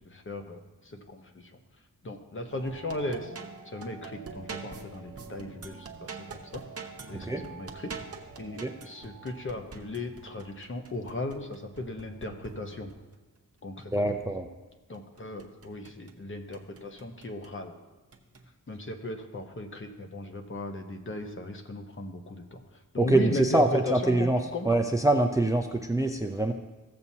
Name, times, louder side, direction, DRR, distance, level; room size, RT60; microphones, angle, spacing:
voice 1, 0.1-1.6 2.0-3.3 3.6-7.9 8.4-12.9 13.6-14.2 14.9-17.8 18.7-24.7, left 2 dB, 35° left, 4 dB, 0.9 m, -37 dB
sound 1, 2.5-13.2 14.9-16.2 16.5-17.6 18.1-18.4, right 4 dB, 45° right, 0.9 m, -45 dB
voice 2, 13.9-14.5 23.0-24.4 24.7-26.5, right 2 dB, 10° right, 5 dB, 0.5 m, -24 dB
15.5 x 7.2 x 2.8 m, 1.2 s
wide cardioid pair, 120°, 34 cm